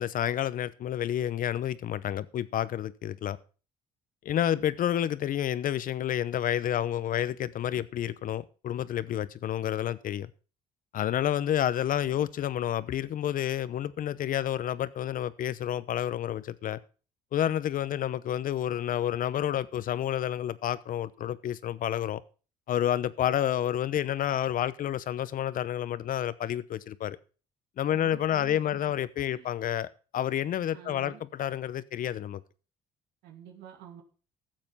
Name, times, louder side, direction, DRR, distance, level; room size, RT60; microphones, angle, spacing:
voice 1, 0.0-3.4 4.2-10.3 10.9-16.8 17.3-22.2 22.7-27.2 27.8-32.4, left 11 dB, 55° left, 0.9 m, -29 dB
voice 2, 27.9-28.8 29.3-29.5 30.7-31.2 33.2-34.0, right 10 dB, 90° right, 2.5 m, -48 dB
14.0 x 7.8 x 5.6 m
cardioid pair, 110°, 17 cm